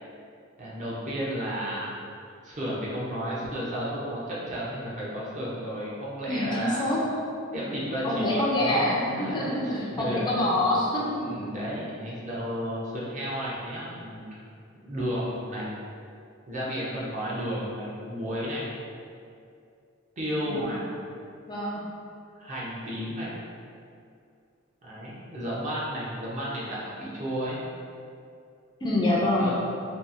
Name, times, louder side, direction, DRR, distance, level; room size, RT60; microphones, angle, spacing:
voice 1, 0.6-2.0 2.4-7.0 7.5-10.8 11.2-14.4 14.8-15.7 16.5-18.7 20.2-20.9 22.4-23.3 24.8-27.6 29.4-29.6, equal, 40° right, -7 dB, 0.6 m, -33 dB
voice 2, 6.3-7.0 8.0-9.7 10.0-11.3 20.5-20.8 21.5-21.8 28.8-29.5, left 1 dB, 20° left, -5 dB, 0.4 m, -26 dB
2.7 x 2.3 x 2.5 m, 2.4 s
head